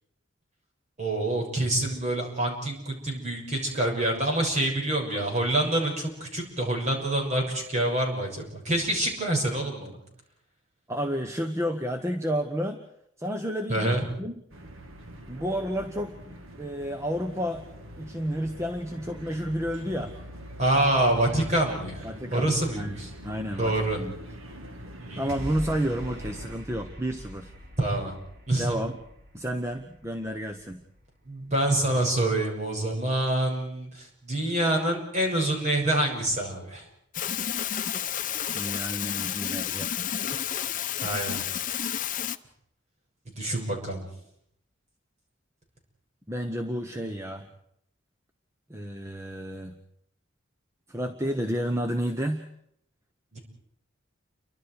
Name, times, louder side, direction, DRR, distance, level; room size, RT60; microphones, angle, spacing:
voice 1, 1.0-10.0 13.7-14.0 20.6-22.0 22.3-23.1 23.6-24.0 25.0-25.3 27.8-28.1 28.5-28.8 31.3-33.9 34.2-36.8 41.0-41.4 43.3-44.0 53.3-53.4, right 1 dB, 35° right, 0 dB, 6.6 m, -26 dB
voice 2, 10.9-12.8 13.2-14.4 15.3-17.6 18.0-20.1 22.0-24.2 25.1-27.5 28.5-29.0 29.3-30.8 38.5-40.0 46.3-47.5 48.7-49.8 50.9-52.4, equal, 15° right, 6 dB, 1.1 m, -31 dB
sound 1, 14.5-26.6, equal, 90° right, 2.3 m, -43 dB
sound 2, 25.3-31.7, left 1 dB, 50° right, 3.4 m, -43 dB
sound 3, 37.1-42.4, left 9 dB, 40° left, 0.8 m, -31 dB
30.0 x 24.5 x 4.8 m, 0.72 s
head